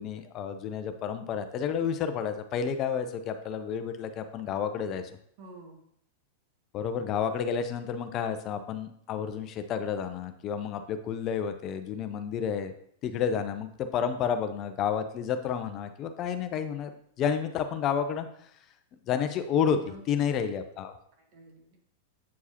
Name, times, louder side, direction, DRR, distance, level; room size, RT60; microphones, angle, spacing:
voice 1, 0.0-5.1 6.7-12.7 13.0-16.9 17.2-18.3 19.1-19.8 20.1-20.9, left 7 dB, 40° left, 8 dB, 0.6 m, -30 dB
voice 2, 5.4-5.8 19.7-20.4 21.2-21.8, right 2 dB, 55° right, 2 dB, 1.7 m, -49 dB
8.3 x 4.6 x 2.9 m, 0.67 s
hypercardioid pair, 115°, 0 cm